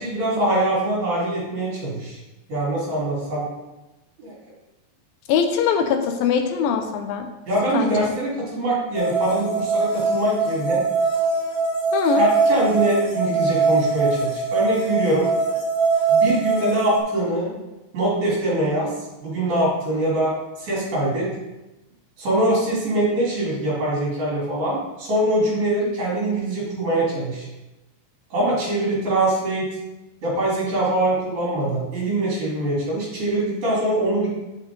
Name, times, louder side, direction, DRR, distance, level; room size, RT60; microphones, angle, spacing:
voice 1, 0.0-2.2 2.5-3.5 4.2-4.3 7.5-10.8 12.2-15.3 16.1-17.6 17.9-18.9 19.2-20.3 20.6-21.3 22.2-27.5 28.3-29.7 30.2-34.3, right 1 dB, 55° right, -6 dB, 4.5 m, -23 dB
voice 2, 5.3-7.3 7.7-8.1 11.9-12.3, left 7 dB, 80° left, 5 dB, 2.3 m, -22 dB
sound 1, 8.9-17.0, right 4 dB, 55° left, 2.5 m, -22 dB
8.0 x 7.5 x 3.9 m, 1.0 s
omnidirectional pair, 4.4 m